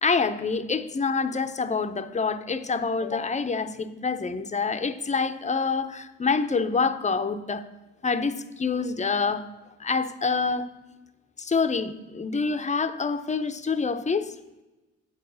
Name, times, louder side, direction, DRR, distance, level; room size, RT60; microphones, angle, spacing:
voice 1, 0.0-7.6 8.0-9.5 9.8-10.7 11.4-14.3, left 4 dB, 25° left, 0.7 m, -26 dB
8.1 x 7.1 x 6.3 m
cardioid pair, 90°, 30 cm